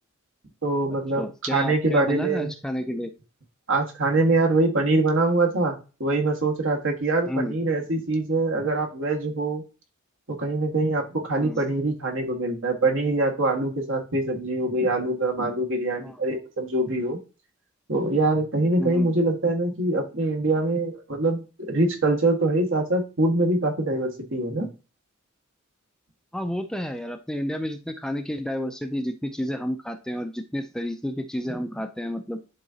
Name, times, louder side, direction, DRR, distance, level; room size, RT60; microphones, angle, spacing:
voice 1, 0.6-2.5 3.7-9.6 10.3-17.2 17.9-24.7, right 2 dB, 65° right, 1.7 m, -24 dB
voice 2, 1.2-3.1 7.3-7.5 11.4-11.6 16.0-16.1 18.8-19.1 26.3-32.4, equal, 5° left, 0.4 m, -30 dB
11.0 x 3.7 x 2.8 m
head